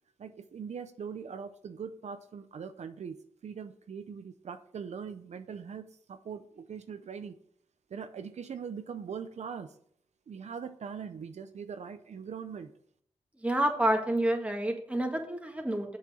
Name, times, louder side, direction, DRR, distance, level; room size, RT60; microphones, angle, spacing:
voice 1, 0.2-7.4 7.9-9.7 10.3-12.7, right 6 dB, 80° right, 9 dB, 0.6 m, -41 dB
voice 2, 13.4-16.0, right 1 dB, 10° right, 2 dB, 1.8 m, -29 dB
7.5 x 5.8 x 6.8 m, 0.63 s
wide cardioid pair, 75°, 12 cm